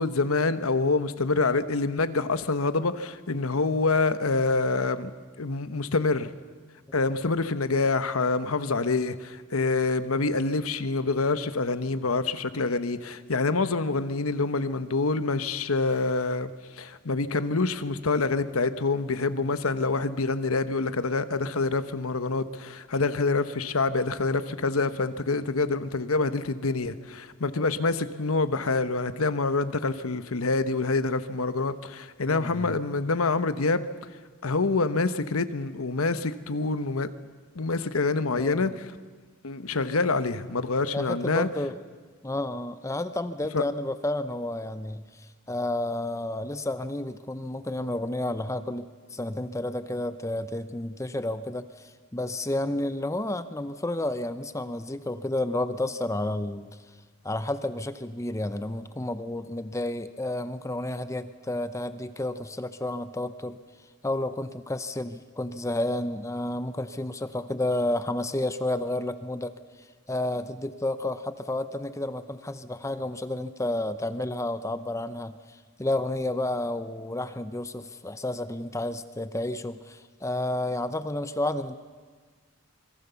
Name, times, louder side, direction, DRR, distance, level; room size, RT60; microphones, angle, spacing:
voice 1, 0.0-5.1 5.4-6.3 6.9-33.9 34.4-37.1 37.5-38.9 39.4-41.5 43.5-43.6, left 3 dB, 80° left, 1.1 m, -26 dB
voice 2, 32.3-32.8 38.4-38.8 40.9-41.7 42.2-48.9 49.1-56.8 57.2-63.6 64.0-69.5 70.1-81.8, left 1 dB, 15° left, 0.7 m, -31 dB
25.5 x 22.5 x 7.0 m
head